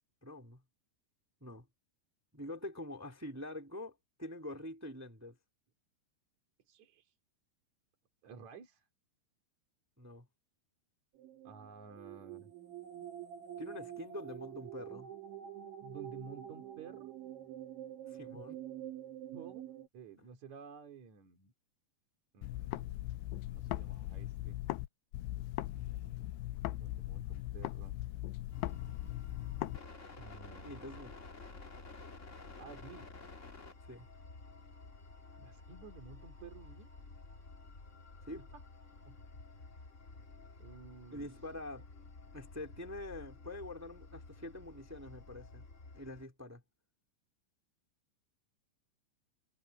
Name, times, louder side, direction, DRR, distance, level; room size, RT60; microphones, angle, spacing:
voice 1, 0.2-0.6 1.4-1.7 2.3-5.4 10.0-10.3 13.6-15.1 18.1-18.6 30.6-31.2 33.9-34.1 38.2-38.5 41.1-41.9 42.3-45.6 45.9-46.6, left 1 dB, 10° right, 0.8 m, -45 dB
voice 2, 6.7-7.1 8.2-8.8 11.4-12.5 15.8-17.1 18.3-18.5 19.3-19.6 19.9-21.5 22.3-24.6 25.7-28.0 30.1-30.9 32.6-33.1 35.4-36.9 38.5-38.6 39.1-39.2 40.6-41.3, right 5 dB, 45° right, 3.5 m, -53 dB
sound 1, 11.2-19.9, right 11 dB, 90° right, 5.1 m, -47 dB
sound 2, 22.4-24.9 25.1-29.8, left 16 dB, 85° left, 2.5 m, -39 dB
sound 3, 28.5-46.2, left 3 dB, 65° left, 0.7 m, -52 dB
omnidirectional pair, 5.1 m